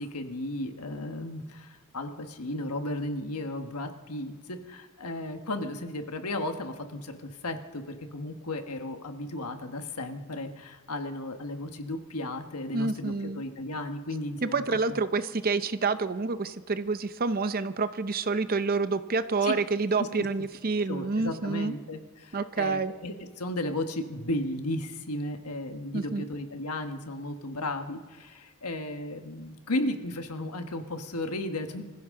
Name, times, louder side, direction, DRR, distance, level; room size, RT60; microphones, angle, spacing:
voice 1, 0.0-14.8 19.4-19.5 20.0-20.1 20.9-31.8, left 1 dB, 85° left, 6 dB, 1.4 m, -34 dB
voice 2, 12.7-13.4 14.4-21.7 22.3-22.9 25.9-26.2, right 4 dB, 40° right, 12 dB, 0.7 m, -28 dB
25.0 x 15.0 x 3.8 m, 1.4 s
head